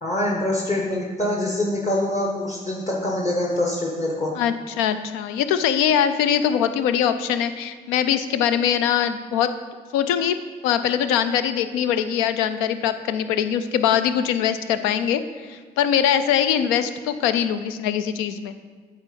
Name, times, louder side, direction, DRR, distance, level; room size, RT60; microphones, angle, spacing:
voice 1, 0.0-4.3, left 1 dB, 35° left, -2 dB, 1.4 m, -24 dB
voice 2, 4.4-9.5 9.9-10.4 10.6-18.5, left 9 dB, 80° left, 11 dB, 0.4 m, -22 dB
8.8 x 3.5 x 5.2 m, 1.5 s
hypercardioid pair, 45°, 21 cm